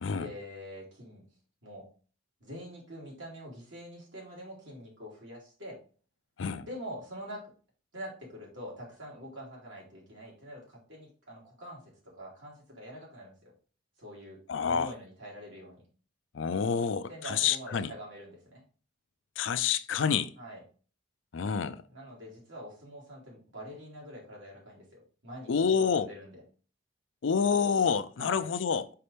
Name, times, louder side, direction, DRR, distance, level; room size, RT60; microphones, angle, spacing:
voice 1, 0.2-1.2 1.6-1.9 2.4-5.8 6.6-7.5 7.9-13.5 14.0-14.4 14.7-15.8 17.1-18.6 20.4-20.6 21.9-25.5 25.9-26.4 28.2-28.4, equal, 75° right, 3.0 m, -45 dB
voice 2, 14.5-14.9 16.3-17.9 19.4-20.3 21.3-21.8 25.5-26.1 27.2-28.9, left 6 dB, 70° left, 0.4 m, -28 dB
5.6 x 5.2 x 3.3 m
head